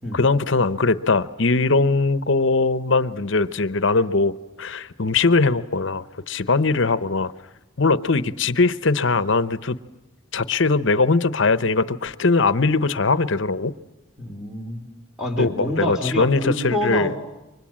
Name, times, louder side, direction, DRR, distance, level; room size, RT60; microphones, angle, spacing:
voice 1, 0.1-7.3 7.8-9.8 10.3-13.7 15.4-17.1, left 3 dB, 60° left, 15 dB, 0.9 m, -21 dB
voice 2, 14.2-14.9 15.2-17.2, left 1 dB, 5° right, 3 dB, 3.5 m, -26 dB
29.5 x 24.5 x 7.5 m, 1.0 s
head